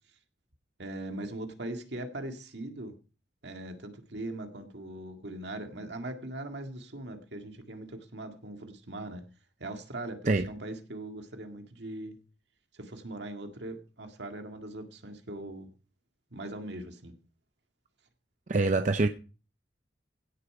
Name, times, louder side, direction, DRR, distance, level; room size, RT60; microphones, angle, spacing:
voice 1, 0.8-2.9 3.4-9.2 9.6-12.2 12.7-15.7 16.3-17.1, right 1 dB, 70° right, 1.9 m, -40 dB
voice 2, 18.5-19.1, right 3 dB, 40° right, 0.5 m, -24 dB
16.5 x 6.9 x 4.9 m
head